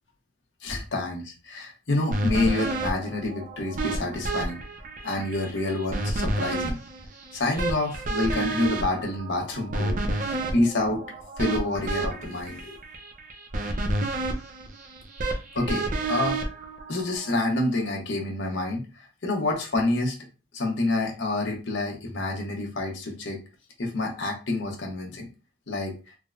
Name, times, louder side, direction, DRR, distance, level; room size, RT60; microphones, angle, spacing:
voice 1, 0.6-4.6 5.0-6.8 7.3-10.2 10.5-11.0 11.4-12.8 15.5-16.4 16.9-20.1 20.5-23.4 23.8-25.3 25.7-25.9, left 2 dB, 70° left, 0 dB, 0.9 m, -28 dB
sound 1, 2.1-17.4, right 2 dB, 40° right, 0.4 m, -30 dB
3.6 x 2.1 x 2.4 m, 0.31 s
head